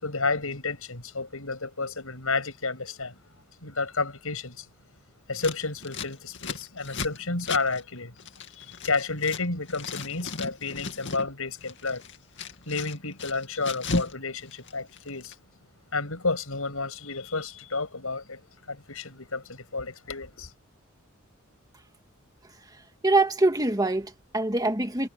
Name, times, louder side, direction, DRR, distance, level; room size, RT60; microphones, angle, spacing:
voice 1, 0.0-3.2 3.6-4.7 5.3-8.1 8.5-12.0 12.7-15.4 15.9-18.4 18.7-20.5, left 3 dB, 80° left, 6.8 m, -31 dB
Scissors, 5.3-9.4 9.7-11.3 11.6-14.2 14.4-15.3, left 3 dB, 60° left, 2.4 m, -35 dB
voice 2, 23.0-25.1, right 2 dB, 20° right, 2.1 m, -24 dB
head